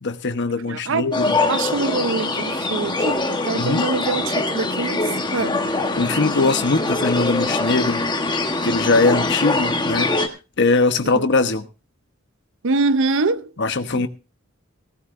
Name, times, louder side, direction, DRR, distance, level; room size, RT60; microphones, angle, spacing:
voice 1, 0.0-1.4 3.5-3.8 5.9-8.0 8.6-10.1 10.6-11.6 13.6-14.1, left 3 dB, 55° left, 1.1 m, -21 dB
voice 2, 0.7-5.0 5.3-5.5 8.9-9.0 11.1-11.3 12.6-13.5 13.9-14.1, right 3 dB, 65° right, 0.7 m, -24 dB
sound 1, 1.1-10.3, left 2 dB, 20° left, 1.2 m, -23 dB
18.5 x 14.0 x 2.6 m
head